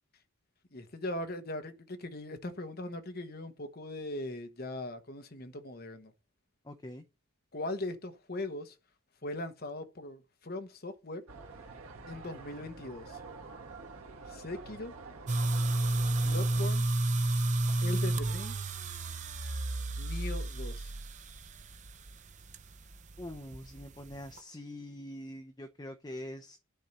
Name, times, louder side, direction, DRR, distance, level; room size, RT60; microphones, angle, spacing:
voice 1, 0.7-6.1 7.5-8.7 9.2-11.2 12.1-13.2 14.3-14.9 16.2-16.8 17.8-18.6 20.0-20.9, left 1 dB, 45° left, 1.2 m, -40 dB
voice 2, 6.6-7.0 23.2-26.6, left 1 dB, 20° left, 0.7 m, -44 dB
sound 1, 11.3-16.7, right 3 dB, 90° right, 1.4 m, -47 dB
sound 2, 15.3-24.4, right 2 dB, 35° right, 0.6 m, -31 dB
10.0 x 4.5 x 6.7 m
head